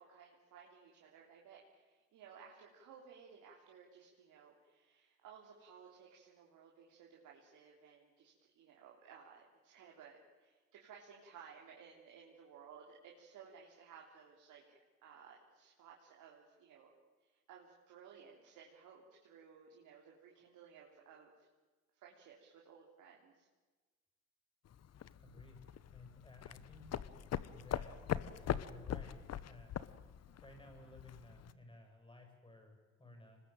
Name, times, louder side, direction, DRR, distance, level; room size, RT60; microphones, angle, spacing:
voice 1, 0.0-14.8 15.0-16.9 17.3-21.3 21.9-23.5, right 6 dB, 85° right, -2 dB, 3.4 m, -58 dB
sound 1, 24.6-31.5, left 10 dB, 60° left, 1.0 m, -42 dB
voice 2, 25.2-26.9 27.5-29.7 30.4-33.4, left 2 dB, 15° left, 4 dB, 7.7 m, -57 dB
25.0 x 20.5 x 9.1 m, 1.3 s
cardioid pair, 90°, 30 cm